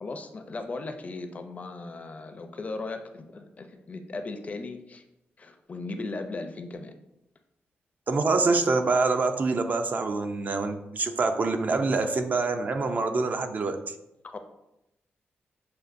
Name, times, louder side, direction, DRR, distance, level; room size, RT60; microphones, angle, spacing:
voice 1, 0.0-5.0 5.4-6.9 14.3-14.4, left 3 dB, 35° left, 7 dB, 0.4 m, -37 dB
voice 2, 8.1-13.8, right 3 dB, 45° right, 7 dB, 0.4 m, -25 dB
6.5 x 2.4 x 2.5 m, 0.89 s
cardioid pair, 105°, 4 cm